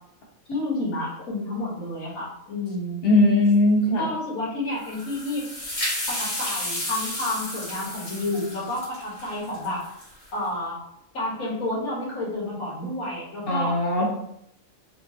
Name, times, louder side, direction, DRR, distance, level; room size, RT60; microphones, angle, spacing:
voice 1, 0.5-3.0 4.0-5.5 6.1-9.8 10.3-10.8 11.1-13.8, left 2 dB, 85° left, -5 dB, 1.8 m, -30 dB
voice 2, 3.0-4.1 13.5-14.1, left 1 dB, 50° left, -2 dB, 0.9 m, -19 dB
sound 1, 4.8-10.3, left 1 dB, 35° left, 1.2 m, -32 dB
4.3 x 2.4 x 2.7 m, 0.74 s
omnidirectional pair, 1.4 m